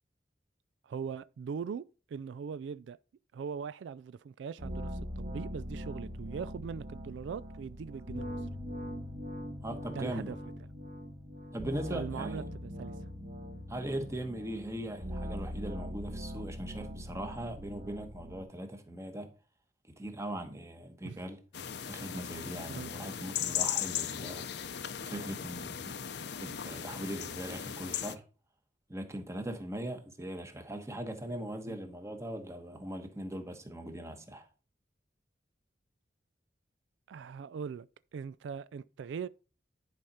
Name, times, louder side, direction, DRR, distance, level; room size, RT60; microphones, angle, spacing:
voice 1, 0.8-3.0 3.3-8.4 9.9-10.4 11.9-12.9 21.0-21.2 22.7-22.9 31.6-31.8 37.1-39.3, right 6 dB, 80° right, 0.3 m, -41 dB
sound 1, 4.6-18.4, equal, 45° right, 1.5 m, -41 dB
voice 2, 9.6-10.3 11.5-12.4 13.7-19.3 20.0-21.4 21.8-24.5 25.0-26.0 26.4-28.2 28.9-34.4, right 1 dB, 15° right, 1.1 m, -40 dB
sound 2, 21.5-28.2, left 9 dB, 65° left, 0.6 m, -37 dB
11.0 x 5.0 x 4.2 m
head